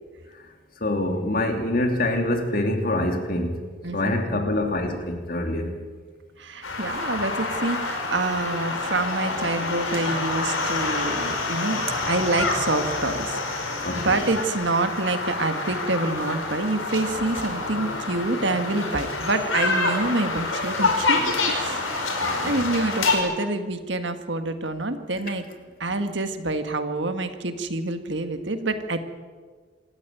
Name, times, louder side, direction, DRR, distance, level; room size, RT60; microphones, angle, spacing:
voice 1, 0.8-3.6 3.9-5.8 13.8-14.3 22.2-22.5, left 1 dB, 45° left, 4 dB, 3.1 m, -25 dB
voice 2, 3.8-4.5 6.4-25.4 25.8-29.0, right 2 dB, 60° right, 8 dB, 1.8 m, -27 dB
sound 1, 6.6-23.2, left 3 dB, 80° left, 5.0 m, -27 dB
26.5 x 14.0 x 9.2 m, 1.5 s
head